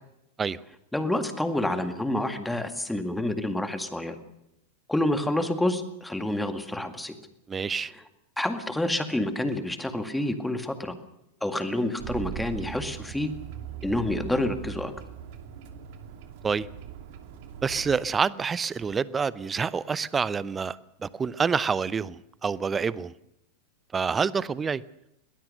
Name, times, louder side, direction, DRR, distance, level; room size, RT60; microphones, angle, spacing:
voice 1, 0.9-4.2 4.9-7.2 8.4-10.9 11.4-13.3 13.8-14.9, left 1 dB, 5° left, 2.0 m, -28 dB
voice 2, 7.5-7.9 16.4-16.7 17.6-23.1 23.9-24.8, right 5 dB, 15° right, 0.7 m, -27 dB
sound 1, 12.0-18.0, right 10 dB, 50° right, 2.5 m, -40 dB
22.0 x 19.5 x 6.6 m
figure-of-eight pair, 90°, 0 cm